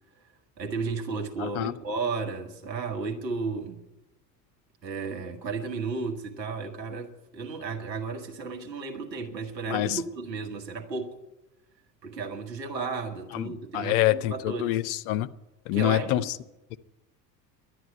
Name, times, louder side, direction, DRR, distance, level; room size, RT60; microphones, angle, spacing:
voice 1, 0.6-3.9 4.8-11.2 12.0-14.8 15.7-16.3, right 4 dB, 80° right, 1.7 m, -33 dB
voice 2, 1.4-1.7 9.7-10.0 13.3-15.3 15.7-16.3, left 14 dB, 55° left, 0.8 m, -26 dB
11.5 x 10.0 x 9.1 m
figure-of-eight pair, 70°, 49 cm